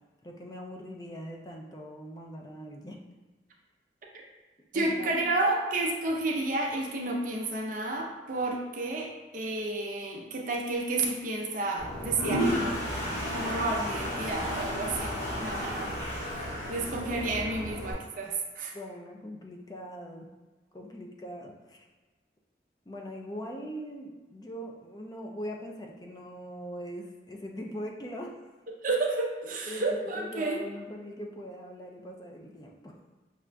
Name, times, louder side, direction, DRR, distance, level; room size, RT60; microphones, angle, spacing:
voice 1, 0.2-3.0 4.7-5.1 18.7-20.3 20.7-21.9 22.9-28.3 29.7-32.9, equal, 20° left, 0 dB, 0.4 m, -41 dB
voice 2, 4.7-12.8 13.3-15.9 16.7-18.7 28.8-30.6, right 2 dB, 50° right, -1 dB, 0.6 m, -31 dB
Toilet flush, 11.8-17.9, equal, 40° left, 1.3 m, -32 dB
6.1 x 2.4 x 2.2 m, 1.2 s
head